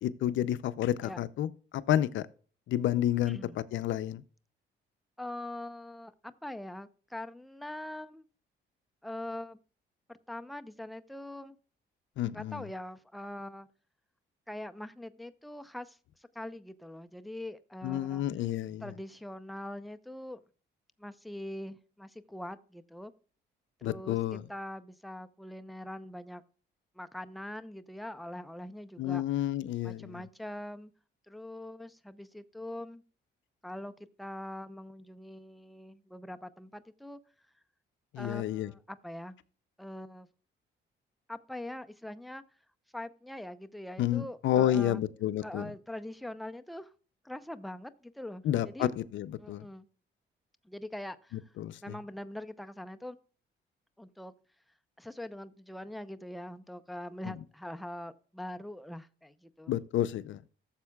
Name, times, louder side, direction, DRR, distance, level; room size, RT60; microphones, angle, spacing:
voice 1, 0.0-2.2 2.7-4.2 12.2-12.6 17.8-18.9 23.8-24.4 29.0-30.2 38.1-38.7 44.0-45.7 48.4-49.7 51.6-51.9 57.3-57.4 59.7-60.4, left 12 dB, 75° left, 0.5 m, -30 dB
voice 2, 5.2-8.3 9.0-9.6 10.1-11.6 12.3-13.7 14.5-16.0 16.3-18.2 18.8-20.4 21.0-23.1 23.8-26.4 27.0-29.2 29.8-30.9 31.3-33.0 33.6-33.9 34.2-37.2 38.2-39.4 39.8-40.3 41.3-42.4 42.9-45.0 45.4-46.9 47.2-48.9 49.4-49.9 50.6-51.4 51.8-53.2 54.0-54.3 55.0-59.8, left 1 dB, ahead, 0.6 m, -43 dB
14.5 x 7.3 x 2.3 m
cardioid pair, 90°, 20 cm